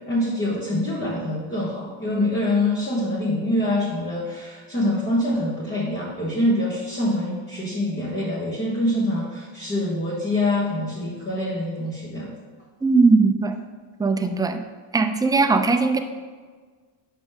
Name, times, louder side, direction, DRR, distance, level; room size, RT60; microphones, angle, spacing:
voice 1, 0.1-12.3, left 1 dB, 20° left, -6 dB, 1.5 m, -25 dB
voice 2, 12.8-13.6 14.0-14.6 14.9-16.0, right 4 dB, 10° right, 6 dB, 0.3 m, -19 dB
6.2 x 5.1 x 3.6 m, 1.5 s
cardioid pair, 95°, 49 cm